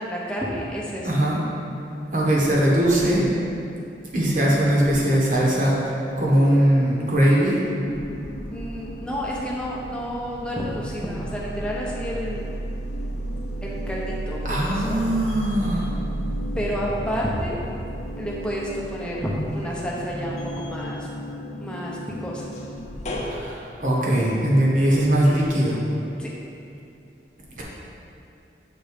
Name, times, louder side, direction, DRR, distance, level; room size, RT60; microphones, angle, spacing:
voice 1, 0.0-1.2 8.5-12.5 13.6-15.0 16.5-17.6 18.2-21.1 21.6-22.5 26.2-26.3, equal, 5° left, -5 dB, 0.8 m, -30 dB
voice 2, 1.0-1.4 2.1-3.2 4.1-5.8 6.2-7.6 14.4-15.9 23.3-25.8 27.6-27.7, right 1 dB, 45° right, -4 dB, 1.2 m, -20 dB
sound 1, 6.3-7.1 7.5-23.4, right 1 dB, 40° left, 0.6 m, -33 dB
6.7 x 3.8 x 5.1 m, 2.7 s
head